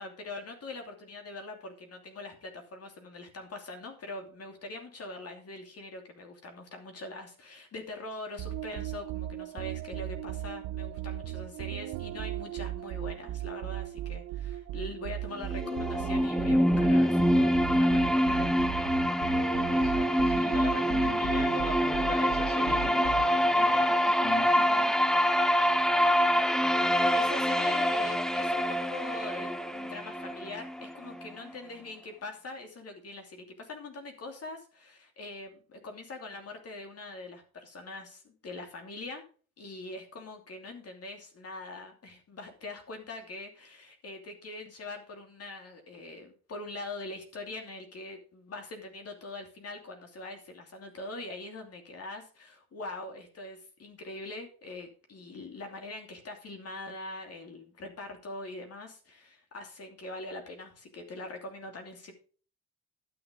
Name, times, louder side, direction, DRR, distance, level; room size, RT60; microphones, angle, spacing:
voice 1, 0.0-18.5 26.8-39.2 39.6-62.1, left 2 dB, 55° left, 4 dB, 2.9 m, -43 dB
sound 1, 8.4-23.5, right 13 dB, 80° right, 0.6 m, -37 dB
sound 2, 15.4-31.3, equal, ahead, 0.7 m, -26 dB
voice 2, 19.7-25.0, left 2 dB, 30° left, 3 dB, 2.3 m, -40 dB
11.5 x 6.7 x 5.3 m, 0.39 s
cardioid pair, 90°, 30 cm